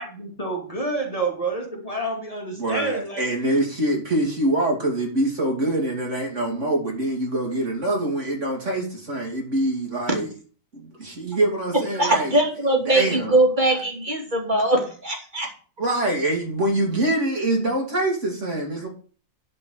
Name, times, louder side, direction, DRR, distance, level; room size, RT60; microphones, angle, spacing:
voice 1, 0.0-3.2, right 2 dB, 25° left, 1 dB, 2.4 m, -28 dB
voice 2, 2.5-10.3 10.7-12.4 12.8-13.4 13.7-13.8 15.8-18.9, right 1 dB, 60° right, 0 dB, 3.3 m, -24 dB
voice 3, 11.9-15.5, right 1 dB, 35° right, 1 dB, 3.0 m, -21 dB
11.0 x 5.4 x 6.5 m, 0.39 s
omnidirectional pair, 1.4 m